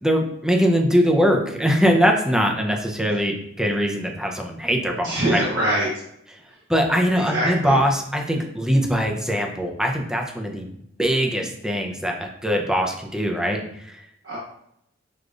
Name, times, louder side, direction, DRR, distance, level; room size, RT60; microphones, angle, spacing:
voice 1, 0.0-5.4 6.7-10.7 11.0-14.0, equal, 5° right, 1 dB, 0.5 m, -22 dB
voice 2, 5.0-5.9 7.1-7.8 14.2-14.4, right 1 dB, 70° right, -7 dB, 1.1 m, -23 dB
6.4 x 2.4 x 2.5 m, 0.74 s
head